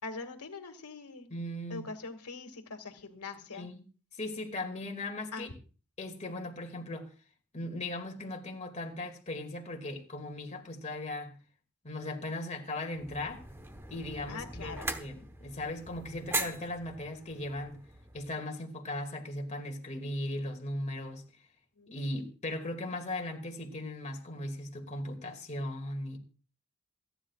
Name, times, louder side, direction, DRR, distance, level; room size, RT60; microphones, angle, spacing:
voice 1, 0.0-1.3 1.7-3.7 5.3-5.5 14.3-14.9 21.8-22.0, left 3 dB, 90° left, 2.1 m, -42 dB
voice 2, 1.3-1.9 3.5-3.8 4.1-5.5 6.0-7.1 7.5-11.3 11.8-13.4 13.9-17.8 18.1-21.2 21.9-26.2, left 1 dB, 30° left, 2.2 m, -38 dB
sound 1, 12.9-18.3, right 2 dB, 10° right, 1.1 m, -40 dB
27.5 x 10.0 x 2.4 m
head